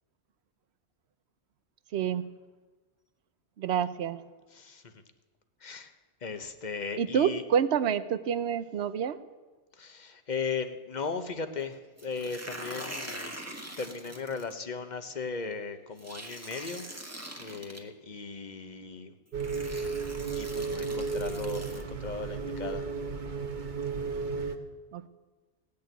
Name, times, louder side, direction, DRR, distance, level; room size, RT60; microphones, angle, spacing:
voice 1, 1.9-2.3 3.6-4.2 7.0-9.2 24.9-25.1, right 8 dB, 70° right, 14 dB, 0.9 m, -28 dB
voice 2, 4.5-5.0 5.6-5.9 6.2-7.4 9.8-13.4 13.8-16.8 17.4-19.1 20.3-22.9, left 5 dB, 40° left, 9 dB, 1.1 m, -37 dB
sound 1, 12.0-14.5 16.0-17.8 18.8-18.9 19.4-21.8, right 1 dB, 15° right, 1.5 m, -43 dB
sound 2, 19.3-24.6, right 5 dB, 45° right, 1.2 m, -34 dB
18.0 x 6.7 x 9.2 m, 1.3 s
omnidirectional pair, 1.2 m